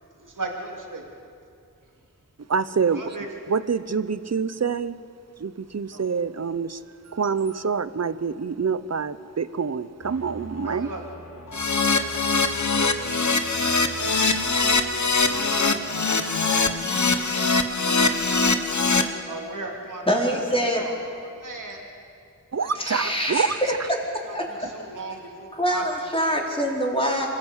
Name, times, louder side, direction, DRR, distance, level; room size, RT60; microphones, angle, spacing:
voice 1, 0.2-1.1 2.9-3.3 5.9-6.1 10.6-11.0 11.3-12.2 17.6-18.2 19.3-20.0 20.5-21.8 22.6-23.3 24.2-26.1, right 2 dB, 70° right, 0 dB, 2.6 m, -38 dB
voice 2, 2.5-3.1 3.5-5.0 5.4-10.9 22.5-23.9, right 5 dB, 50° right, 14 dB, 0.8 m, -26 dB
sound 1, 10.0-16.3, left 1 dB, 90° left, 4.1 m, -43 dB
Keyboard (musical), 11.5-19.0, left 3 dB, 60° left, 1.3 m, -22 dB
voice 3, 20.1-20.9 22.8-23.7 24.3-24.5 25.5-27.3, equal, 15° left, -3 dB, 4.4 m, -24 dB
26.0 x 15.0 x 8.1 m, 2.4 s
wide cardioid pair, 50°, 33 cm